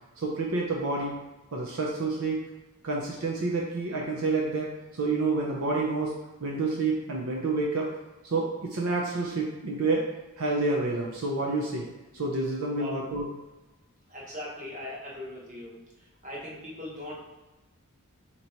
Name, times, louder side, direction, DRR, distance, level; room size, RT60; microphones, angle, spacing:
voice 1, 0.2-1.1 1.5-2.4 2.8-4.7 4.9-6.1 6.4-7.9 8.2-10.0 10.4-11.9 12.1-13.3, right 3 dB, 70° right, -2 dB, 0.6 m, -28 dB
voice 2, 14.1-15.8 16.2-17.2, left 1 dB, 35° right, -5 dB, 1.2 m, -39 dB
3.9 x 3.0 x 4.4 m, 1.1 s
head